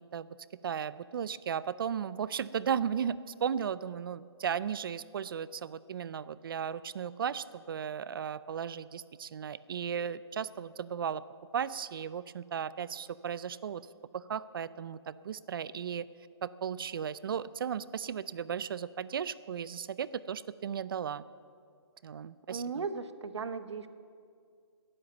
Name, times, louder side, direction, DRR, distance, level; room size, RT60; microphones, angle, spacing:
voice 1, 0.6-11.2 11.5-13.8 14.1-16.1 16.4-21.2 22.0-22.8, right 8 dB, 55° right, 17 dB, 0.4 m, -35 dB
voice 2, 22.5-23.9, right 5 dB, 80° right, 12 dB, 1.0 m, -36 dB
14.0 x 11.0 x 7.0 m, 2.3 s
hypercardioid pair, 160°, 15 cm